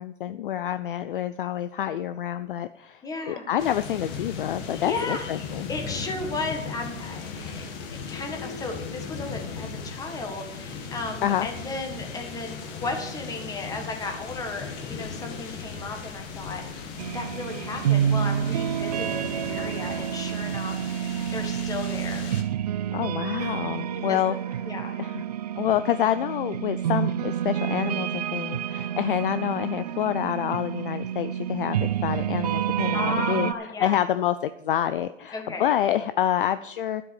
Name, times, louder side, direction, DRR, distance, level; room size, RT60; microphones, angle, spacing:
voice 1, 0.0-5.7 11.2-11.5 22.9-24.4 25.0-25.2 25.6-33.5 33.8-37.0, left 11 dB, 45° left, 13 dB, 0.5 m, -27 dB
voice 2, 3.0-3.5 4.8-5.3 5.7-7.7 8.1-16.7 17.1-22.3 23.9-25.0 32.9-34.0 35.3-35.7, left 3 dB, 10° left, 4 dB, 1.6 m, -34 dB
sound 1, 3.6-22.4, left 5 dB, 25° left, 1.7 m, -37 dB
sound 2, 17.0-33.5, right 10 dB, 35° right, 0.4 m, -29 dB
11.5 x 7.8 x 7.1 m, 0.86 s
hypercardioid pair, 140°, 37 cm